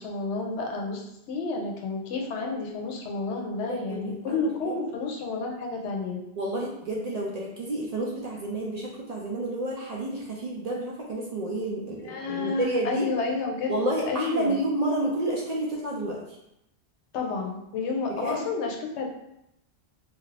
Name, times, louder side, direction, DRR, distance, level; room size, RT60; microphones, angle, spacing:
voice 1, 0.0-6.2 12.0-14.6 17.1-19.1, left 3 dB, 85° left, 1 dB, 0.9 m, -30 dB
voice 2, 3.7-4.8 6.4-13.1 13.7-16.4 18.1-18.4, right 1 dB, 60° right, -2 dB, 0.4 m, -30 dB
2.7 x 2.4 x 3.2 m, 0.81 s
omnidirectional pair, 1.1 m